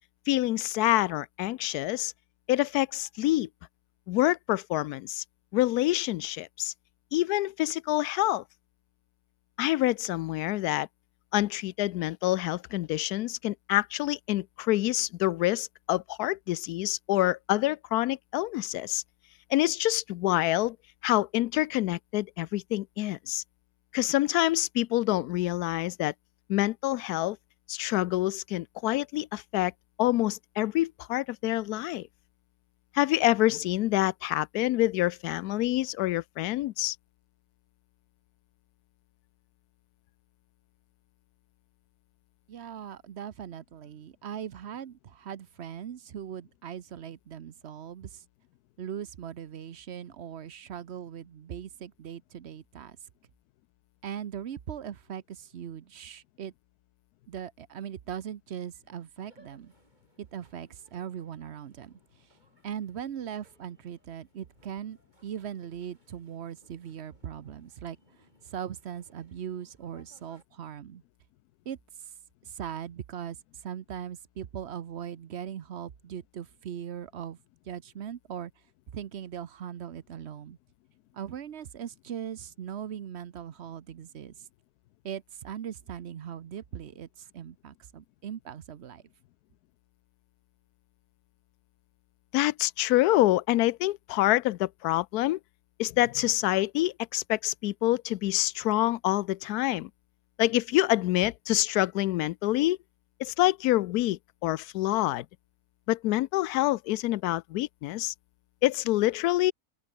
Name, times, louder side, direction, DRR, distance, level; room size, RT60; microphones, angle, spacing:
voice 1, 0.3-2.1 2.5-3.5 4.1-5.2 5.5-6.7 7.1-8.4 9.6-10.9 11.3-19.0 19.5-20.8 21.0-23.4 23.9-26.1 26.5-27.4 27.7-29.7 30.0-32.1 32.9-37.0 92.3-95.4 95.8-99.9 100.4-102.8 103.2-105.2 105.9-108.1 108.6-109.5, left 16 dB, 85° left, 1.1 m, -26 dB
voice 2, 42.5-48.2 48.8-53.0 54.0-56.5 57.3-59.7 60.2-62.0 62.6-68.0 68.5-71.0 71.7-71.8 72.5-73.4 73.6-77.4 77.7-78.5 78.9-80.6 81.1-84.3 85.0-87.1 87.3-89.0, right 9 dB, 55° right, 0.9 m, -39 dB
sound 1, 59.2-70.4, right 1 dB, 30° right, 7.6 m, -65 dB
open air
omnidirectional pair, 1.6 m